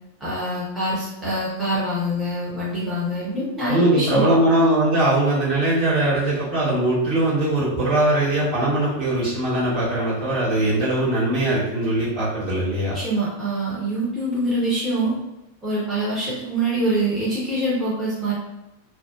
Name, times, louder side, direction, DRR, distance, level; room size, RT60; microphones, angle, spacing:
voice 1, 0.2-4.2 12.9-15.1 15.6-18.3, right 1 dB, 10° right, -9 dB, 0.8 m, -25 dB
voice 2, 3.7-13.0, right 1 dB, 45° right, -8 dB, 1.3 m, -21 dB
2.5 x 2.1 x 2.3 m, 0.91 s
figure-of-eight pair, 90°, 0 cm